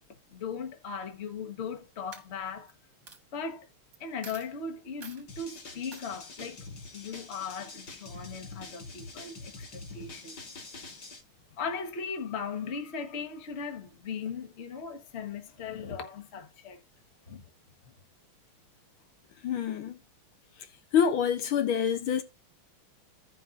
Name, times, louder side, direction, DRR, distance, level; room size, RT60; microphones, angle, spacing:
voice 1, 0.3-2.7 3.3-3.7 4.0-6.7 6.9-10.4 11.6-16.8 17.3-17.4, left 5 dB, 35° left, 1.2 m, -38 dB
Coin (dropping), 1.5-1.8 2.1-2.7 3.1-3.2 3.9-4.0 4.2-4.5 5.0-5.2 5.9-6.1, right 5 dB, 45° right, 1.5 m, -47 dB
sound 1, 5.3-11.2, left 3 dB, 55° left, 2.1 m, -45 dB
voice 2, 19.4-20.0 20.9-22.2, left 8 dB, 75° left, 1.6 m, -26 dB
16.0 x 5.4 x 2.5 m
omnidirectional pair, 2.4 m